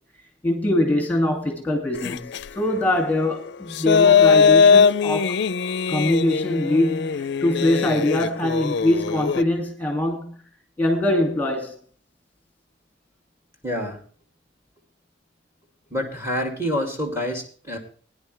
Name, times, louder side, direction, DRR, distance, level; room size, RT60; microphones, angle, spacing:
voice 1, 0.4-5.4 5.9-10.4 10.8-11.8, left 1 dB, 10° left, 2.4 m, -23 dB
sound 1, 2.0-2.5 3.5-9.4, left 6 dB, 65° left, 0.5 m, -19 dB
voice 2, 13.6-14.0 15.9-17.8, left 1 dB, 15° right, 2.5 m, -27 dB
19.0 x 10.5 x 3.3 m
head